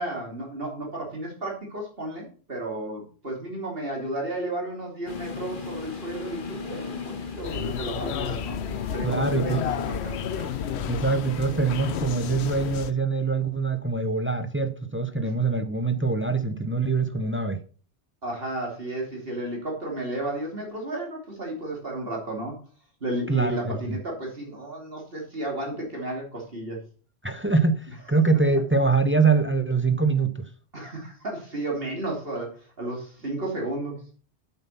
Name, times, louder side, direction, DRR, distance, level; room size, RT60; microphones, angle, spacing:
voice 1, 0.0-8.6 8.9-10.5 18.2-22.6 23.0-26.8 30.7-34.0, right 1 dB, 60° right, 3.0 m, -33 dB
sound 1, 5.1-12.8, left 4 dB, 50° left, 1.4 m, -38 dB
sound 2, 7.4-12.9, left 9 dB, 75° left, 0.9 m, -32 dB
voice 2, 9.0-9.7 10.9-17.6 23.3-24.0 27.2-30.5, right 4 dB, 15° right, 0.7 m, -24 dB
8.4 x 7.7 x 5.7 m
omnidirectional pair, 1.1 m